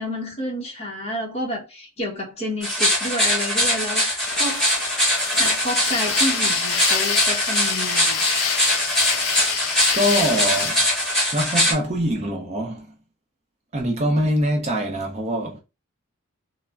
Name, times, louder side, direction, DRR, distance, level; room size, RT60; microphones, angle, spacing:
voice 1, 0.0-4.7 5.4-8.3, left 1 dB, 30° left, 1.0 m, -29 dB
sound 1, 2.6-11.7, equal, 5° left, 0.9 m, -22 dB
sound 2, 3.4-11.5 11.9-12.0, left 4 dB, 65° left, 0.9 m, -33 dB
sound 3, 5.7-10.7, left 8 dB, 85° left, 0.4 m, -28 dB
voice 2, 9.9-10.8 11.3-12.9 13.7-15.6, equal, 30° right, 0.5 m, -23 dB
3.2 x 2.1 x 2.3 m
head